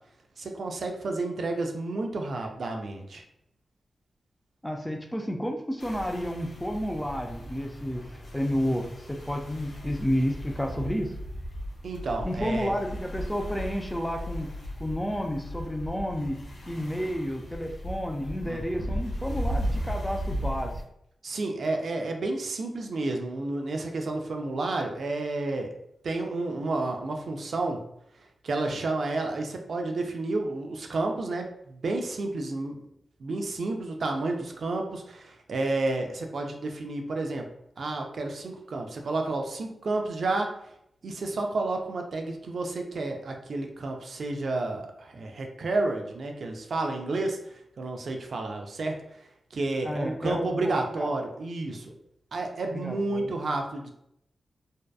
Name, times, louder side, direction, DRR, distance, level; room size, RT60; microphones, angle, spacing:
voice 1, 0.4-3.2 11.8-12.7 18.4-18.9 21.2-25.7 26.0-27.8 28.4-32.8 33.2-37.5 37.8-40.5 41.0-51.9 52.3-53.9, right 2 dB, 65° right, 3 dB, 0.4 m, -31 dB
voice 2, 4.6-8.0 8.3-11.1 12.2-14.5 14.8-16.4 16.7-20.7 49.9-51.1 52.7-53.3, equal, 5° left, 3 dB, 0.4 m, -31 dB
sound 1, 5.8-20.8, equal, 70° left, 0.6 m, -36 dB
2.7 x 2.2 x 2.3 m, 0.75 s
wide cardioid pair, 105°, 0 cm